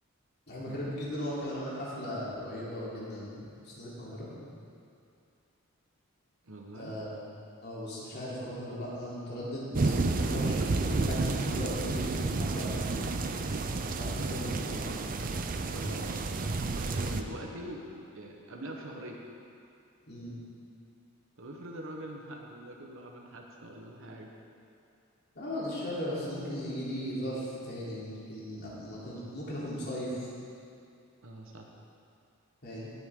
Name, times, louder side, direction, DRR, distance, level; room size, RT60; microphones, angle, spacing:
voice 1, 0.5-4.3 6.7-7.1 7.6-13.1 14.0-15.0 15.7-16.2 20.1-20.4 25.3-30.3 32.6-32.9, equal, 50° left, -7 dB, 3.3 m, -37 dB
voice 2, 6.4-7.0 15.7-16.2 16.6-19.2 21.4-24.3 31.2-31.7, right 1 dB, 65° right, 0 dB, 1.1 m, -44 dB
sound 1, 9.7-17.2, right 3 dB, 40° right, 0.5 m, -31 dB
18.0 x 8.0 x 3.7 m, 2.5 s
head